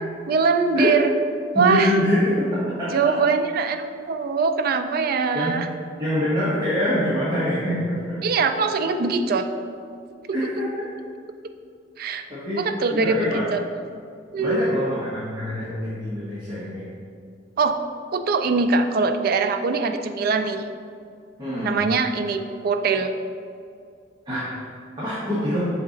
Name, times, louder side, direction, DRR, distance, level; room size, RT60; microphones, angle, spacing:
voice 1, 0.3-1.1 1.5-1.9 2.9-5.7 8.2-9.5 10.3-10.5 12.0-12.3 12.5-13.6 14.3-14.8 17.6-17.8 18.1-20.6 21.6-23.2, right 4 dB, 55° right, 8 dB, 0.4 m, -22 dB
voice 2, 1.5-3.1 5.1-5.6 6.0-8.2 10.3-10.7 12.3-12.6 13.0-13.4 14.4-16.9 21.4-21.8 24.2-24.5 25.0-25.7, left 1 dB, 25° right, -11 dB, 1.3 m, -25 dB
6.6 x 4.0 x 3.8 m, 2.3 s
head